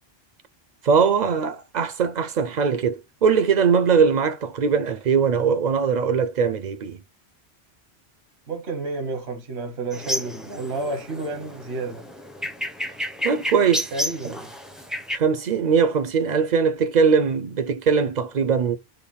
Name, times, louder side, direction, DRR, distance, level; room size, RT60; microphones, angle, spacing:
voice 1, 0.8-7.0 13.2-13.9 15.1-18.8, right 6 dB, 55° right, 0.5 m, -21 dB
voice 2, 8.5-12.1 13.9-14.5, right 3 dB, 90° right, 1.3 m, -30 dB
sound 1, 9.9-15.2, equal, ahead, 0.5 m, -31 dB
5.3 x 2.2 x 4.0 m
omnidirectional pair, 1.0 m